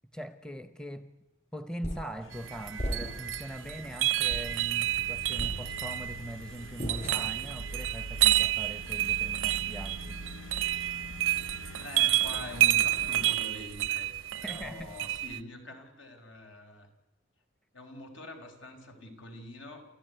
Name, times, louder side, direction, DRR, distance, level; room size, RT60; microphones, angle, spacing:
voice 1, 0.1-1.2 1.5-10.2 14.4-15.0, equal, 5° left, 0.8 m, -41 dB
sound 1, 1.8-2.2 2.8-3.4 3.8-3.9 4.3-4.7 5.4-6.1 6.8-7.5, equal, 40° left, 6.3 m, -37 dB
sound 2, 2.2-13.3, left 3 dB, 90° left, 0.7 m, -47 dB
sound 3, 2.3-15.4, right 14 dB, 85° right, 0.7 m, -30 dB
voice 2, 11.8-16.9 17.7-19.9, left 1 dB, 75° left, 4.5 m, -44 dB
29.0 x 14.0 x 9.3 m
head